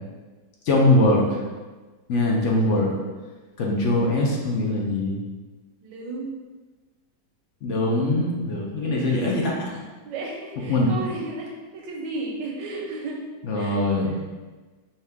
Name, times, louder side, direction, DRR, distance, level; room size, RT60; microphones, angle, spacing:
voice 1, 0.6-1.4 2.1-2.9 3.6-5.2 7.6-9.8 10.7-10.9 13.4-14.1, left 1 dB, 60° left, -2 dB, 0.8 m, -22 dB
voice 2, 5.8-6.4 8.8-9.5 10.0-13.2 13.5-13.8 14.1-14.2, right 2 dB, 80° right, -1 dB, 1.5 m, -34 dB
5.4 x 2.5 x 3.4 m, 1.3 s
omnidirectional pair, 1.9 m